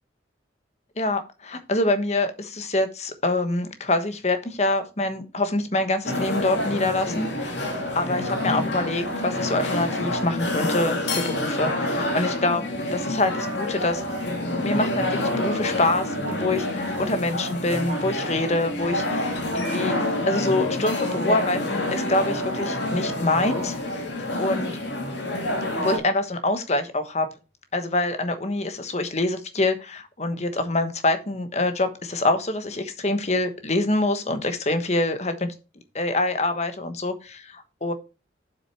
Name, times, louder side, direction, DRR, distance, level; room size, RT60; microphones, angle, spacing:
voice 1, 1.0-7.5 7.9-14.0 14.6-19.9 20.3-23.7 24.1-24.7 25.7-27.3 27.7-35.5 35.9-37.9, left 2 dB, 35° left, 9 dB, 1.2 m, -25 dB
sound 1, 6.0-26.0, left 1 dB, 70° left, 2.6 m, -27 dB
7.7 x 6.5 x 4.5 m, 0.30 s
head